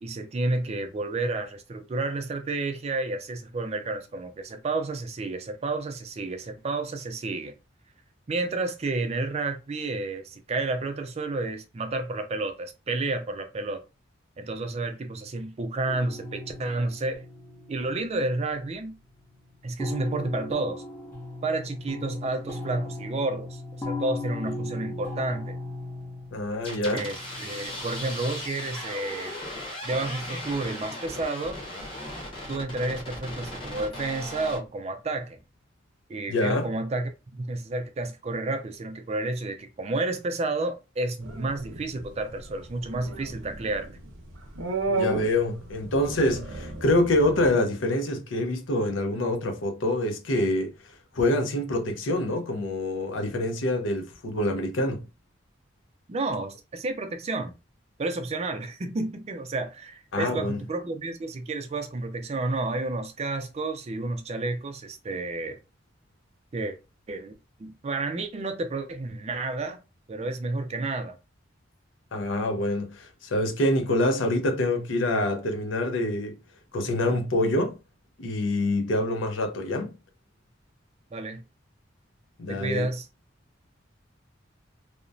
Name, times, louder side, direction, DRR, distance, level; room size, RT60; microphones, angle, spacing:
voice 1, 0.0-7.5 8.3-13.8 14.4-17.2 17.7-18.9 19.6-20.8 21.4-25.6 26.9-29.3 29.8-31.6 32.5-35.4 36.1-43.9 56.1-57.6 58.0-65.6 66.5-66.8 67.1-67.3 67.6-69.8 70.1-71.1 81.1-81.4 82.5-83.1, right 2 dB, 35° right, 0.4 m, -31 dB
sound 1, 15.9-18.8 19.1-19.2 19.8-28.3 28.8-29.8, left 2 dB, 10° left, 0.6 m, -38 dB
voice 2, 26.3-27.1 36.3-36.7 44.9-50.7 51.1-55.0 60.1-60.6 72.1-76.4 76.7-77.8 78.2-80.0 82.4-82.9, left 1 dB, 75° left, 0.6 m, -26 dB
sound 2, 26.6-34.6, left 1 dB, 25° left, 1.1 m, -37 dB
sound 3, 41.2-47.5, right 3 dB, 85° right, 0.6 m, -34 dB
2.9 x 2.1 x 2.5 m
head